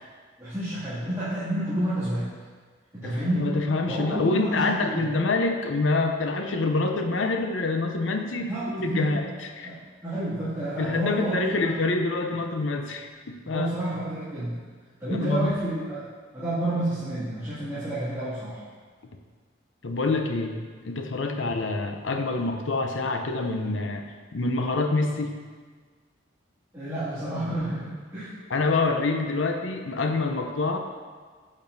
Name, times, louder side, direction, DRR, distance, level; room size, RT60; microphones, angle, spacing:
voice 1, 0.4-2.3 2.9-3.5 3.9-5.0 8.5-9.1 9.6-11.6 13.4-14.6 15.0-16.0 16.3-18.6 21.3-21.4 26.7-28.3, right 1 dB, 15° right, -15 dB, 2.3 m, -30 dB
voice 2, 3.0-9.7 10.8-13.7 15.1-15.5 19.8-20.6 20.8-24.0 24.3-25.3 28.5-30.8, left 3 dB, 70° left, 4 dB, 0.7 m, -26 dB
8.8 x 7.4 x 2.7 m, 1.5 s
head